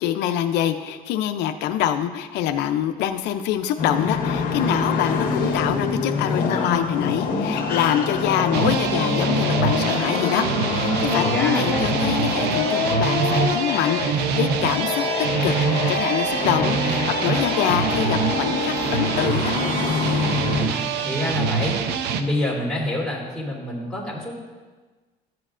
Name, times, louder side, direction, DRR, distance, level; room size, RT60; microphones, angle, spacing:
voice 1, 0.0-15.0 15.4-19.6, left 10 dB, 85° left, 8 dB, 0.5 m, -25 dB
sound 1, 3.8-20.7, left 4 dB, 60° left, 1.6 m, -25 dB
sound 2, 8.5-22.2, right 6 dB, 80° right, 0.6 m, -25 dB
voice 2, 11.2-12.0 20.5-21.7 22.1-24.4, equal, 5° left, -5 dB, 2.9 m, -27 dB
13.5 x 7.7 x 2.5 m, 1.3 s
cardioid pair, 110°, 17 cm